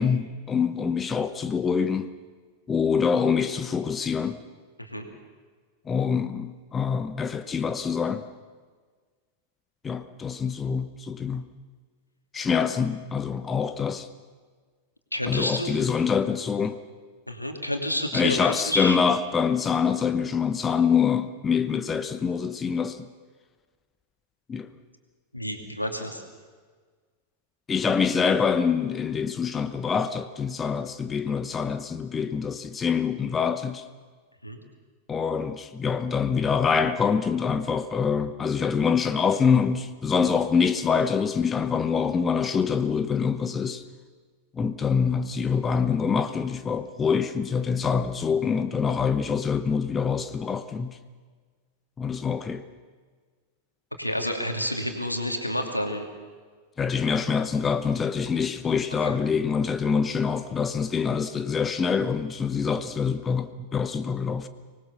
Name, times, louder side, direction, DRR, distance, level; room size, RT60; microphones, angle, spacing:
voice 1, 0.0-2.1 2.7-4.4 5.9-8.3 9.8-11.5 12.3-14.1 15.3-16.8 18.1-23.1 24.5-24.7 27.7-33.8 35.1-43.8 44.5-51.0 52.0-52.6 56.8-64.5, left 6 dB, 20° left, 1.0 m, -25 dB
voice 2, 15.1-15.8 17.3-19.0 25.3-26.2 34.4-34.6 54.0-56.0 59.0-59.2, equal, 85° left, 2.8 m, -29 dB
25.0 x 20.0 x 6.9 m
figure-of-eight pair, 90°, 0 cm